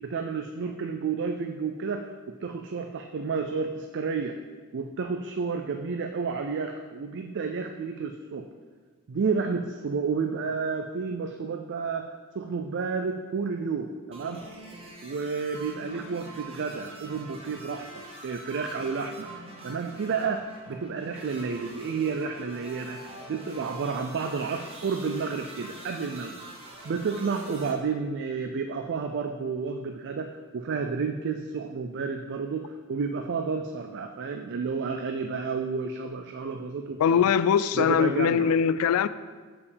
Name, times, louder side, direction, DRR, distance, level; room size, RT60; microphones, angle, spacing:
voice 1, 0.0-4.4 4.7-8.5 9.1-14.4 15.0-19.3 19.6-26.4 26.8-37.0 37.8-38.5, right 5 dB, 55° right, 0.4 m, -31 dB
sound 1, 14.1-27.7, right 2 dB, 30° right, 1.1 m, -44 dB
voice 2, 37.0-39.1, left 7 dB, 80° left, 0.3 m, -22 dB
6.9 x 4.8 x 5.1 m
head